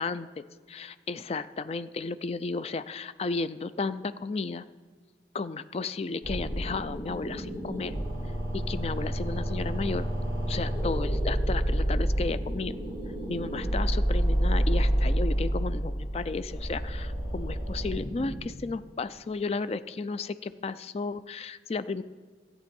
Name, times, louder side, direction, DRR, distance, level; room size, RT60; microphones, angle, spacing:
voice 1, 0.0-4.6 5.3-8.0 8.5-10.1 10.5-12.7 13.3-22.0, left 4 dB, 35° left, 14 dB, 0.3 m, -33 dB
sound 1, 6.2-18.4, equal, 75° left, 4.3 m, -29 dB
13.0 x 8.5 x 5.3 m, 1.6 s
head